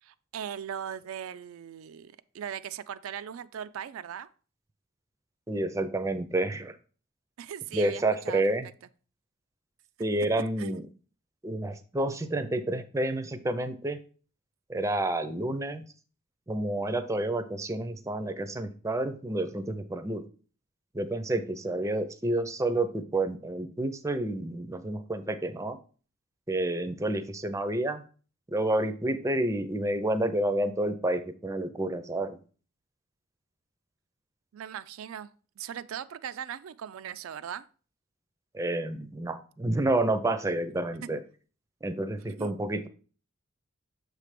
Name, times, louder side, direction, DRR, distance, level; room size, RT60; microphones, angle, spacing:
voice 1, 0.0-4.3 7.4-8.4 10.6-10.8 34.5-37.6 41.0-41.1 42.2-42.5, right 8 dB, 90° right, 0.4 m, -39 dB
voice 2, 5.5-6.8 7.7-8.7 10.0-10.9 11.4-14.0 14.7-15.8 16.5-20.2 20.9-25.8 26.5-28.0 28.5-32.4 38.5-41.2 41.8-42.9, right 1 dB, 15° right, 0.5 m, -29 dB
6.6 x 3.2 x 5.0 m
head